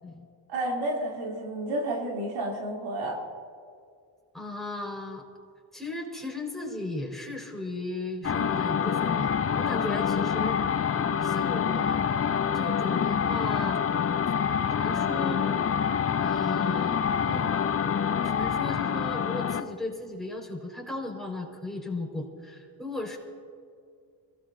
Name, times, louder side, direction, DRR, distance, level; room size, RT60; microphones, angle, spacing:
voice 1, 0.5-3.2 17.2-17.5, right 1 dB, 80° right, -1 dB, 3.5 m, -31 dB
voice 2, 4.3-5.2 5.7-10.6 11.2-12.0 12.5-13.8 14.7-15.5 16.2-17.0 17.3-17.4 18.2-23.2, left 2 dB, ahead, -1 dB, 5.1 m, -36 dB
sound 1, 8.2-19.7, left 7 dB, 30° left, 0.7 m, -26 dB
25.0 x 18.0 x 2.8 m, 2.2 s
supercardioid pair, 70°, 46 cm